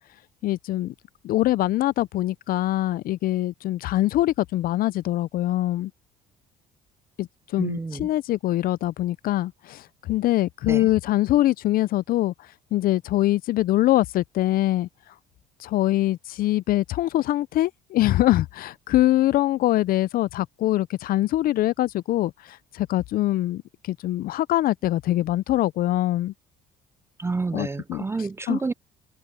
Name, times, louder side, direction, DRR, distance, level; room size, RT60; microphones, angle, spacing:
voice 1, 0.4-0.9 1.2-5.9 7.2-7.3 7.5-9.8 10.1-12.3 12.7-14.9 15.6-22.3 22.7-23.6 23.9-26.3 27.5-28.0 28.5-28.6, left 15 dB, 60° left, 0.4 m, -23 dB
voice 2, 7.6-8.1 10.7-10.9 27.2-28.7, right 3 dB, 15° right, 0.4 m, -29 dB
cardioid pair, 110°, 17 cm